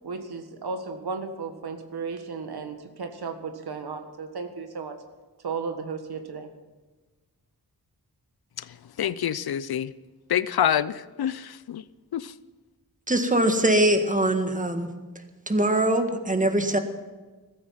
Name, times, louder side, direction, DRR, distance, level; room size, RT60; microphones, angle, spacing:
voice 1, 0.0-5.0 5.4-6.5, right 4 dB, 85° right, 6 dB, 1.6 m, -34 dB
voice 2, 9.0-9.9 10.3-11.8 12.1-12.3, left 10 dB, 75° left, 17 dB, 0.6 m, -26 dB
voice 3, 13.1-14.9 15.5-16.8, right 1 dB, 20° right, 6 dB, 1.7 m, -22 dB
15.0 x 13.5 x 5.8 m, 1.3 s
wide cardioid pair, 90°, 37 cm